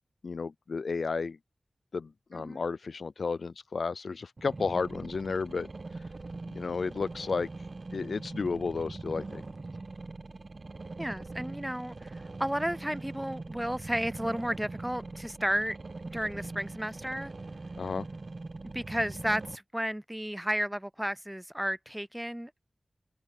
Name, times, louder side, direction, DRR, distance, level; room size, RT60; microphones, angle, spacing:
voice 1, 0.2-1.4 1.9-5.7 6.5-7.5 7.9-9.4 17.8-18.0, left 4 dB, 90° left, 0.5 m, -32 dB
sound 1, 4.4-19.6, right 3 dB, 55° right, 1.6 m, -42 dB
voice 2, 11.0-15.8 16.1-17.3 18.7-22.7, equal, 10° right, 0.4 m, -33 dB
open air
wide cardioid pair, 65°, 0 cm